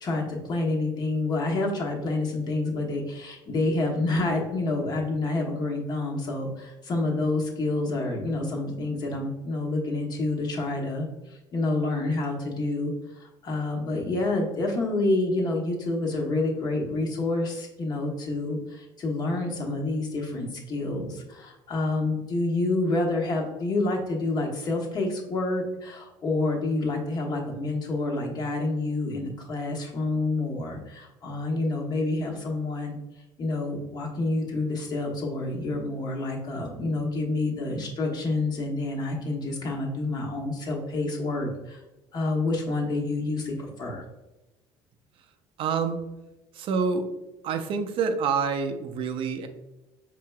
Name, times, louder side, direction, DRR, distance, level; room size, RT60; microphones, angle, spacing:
voice 1, 0.0-33.0 33.4-41.8 42.1-44.0, left 2 dB, 40° left, -1 dB, 1.1 m, -28 dB
voice 2, 45.6-46.0 46.5-47.1 47.4-49.5, right 5 dB, 60° right, 7 dB, 0.6 m, -27 dB
4.9 x 3.3 x 2.3 m, 1.0 s
supercardioid pair, 95°, 10 cm